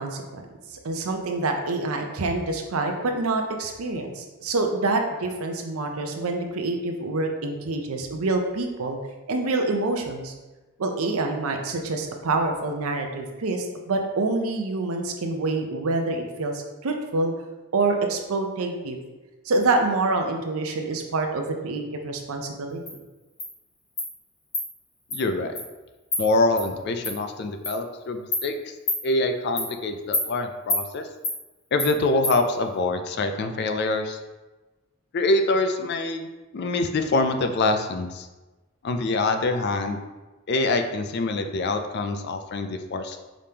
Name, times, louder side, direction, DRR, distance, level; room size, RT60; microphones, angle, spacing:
voice 1, 0.0-9.0 9.3-10.3 10.8-17.3 17.7-19.0 19.5-22.8, right 3 dB, 75° right, 4 dB, 0.6 m, -26 dB
Insect, 22.9-23.0 23.4-23.5 24.0-24.1 24.5-24.6 25.1-25.2 25.5-25.7 26.1-26.2 26.6-26.7 27.0-27.1 27.6-27.8 28.3-28.4 28.9-29.0 29.6-29.7 30.1-30.3 30.7-30.8 31.2-31.4 31.8-31.9 32.2-32.3, left 1 dB, 20° left, 1.3 m, -26 dB
voice 2, 25.1-25.6 26.2-28.7 29.0-31.1 31.7-34.2 35.1-36.3 36.5-38.3 38.8-40.0 40.5-43.2, left 2 dB, 50° left, 7 dB, 0.4 m, -25 dB
5.0 x 3.5 x 2.8 m, 1.2 s
head